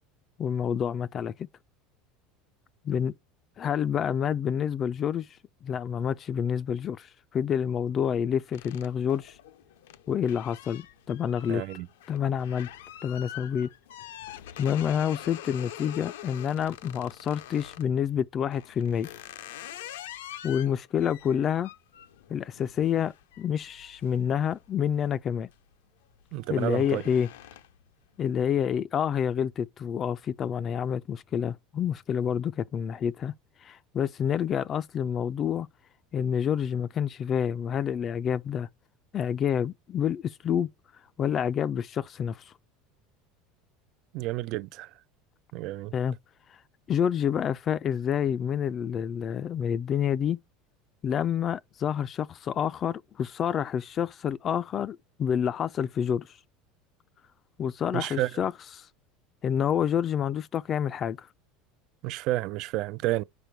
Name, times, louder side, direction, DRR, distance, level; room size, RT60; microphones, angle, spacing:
voice 1, 0.4-1.3 2.8-3.1 3.6-5.3 5.6-9.4 10.1-11.6 12.1-12.7 13.0-13.7 14.6-19.1 20.4-21.7 22.3-25.5 26.5-27.3 28.2-33.3 33.6-35.7 36.1-38.7 39.1-40.7 41.2-42.5 45.9-46.2 46.5-46.6 46.9-50.4 51.0-56.4 57.6-58.9 59.4-61.3, left 8 dB, 35° left, 0.3 m, -28 dB
sound 1, 8.5-17.9 18.5-25.0 25.4-25.7 26.0-27.9, left 12 dB, 90° left, 0.6 m, -45 dB
voice 2, 11.5-11.9 26.3-27.0 44.1-44.9 45.5-45.9 57.9-58.4 62.0-63.2, right 17 dB, 60° right, 0.3 m, -30 dB
5.0 x 5.0 x 4.5 m
supercardioid pair, 115°, 0 cm